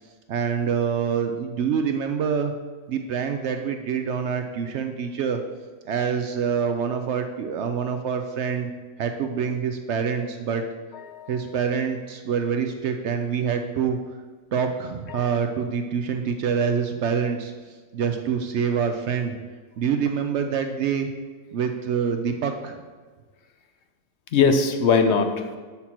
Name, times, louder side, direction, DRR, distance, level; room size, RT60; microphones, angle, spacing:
voice 1, 0.3-2.5 2.9-5.4 5.9-8.7 9.0-10.6 11.3-14.0 14.5-17.5 17.9-19.4 19.8-21.1 21.5-22.8, right 7 dB, 75° right, 6 dB, 0.6 m, -26 dB
voice 2, 10.9-11.4 15.1-15.4 24.3-25.6, left 5 dB, 60° left, 7 dB, 0.7 m, -22 dB
7.1 x 6.0 x 4.3 m, 1.4 s
omnidirectional pair, 1.7 m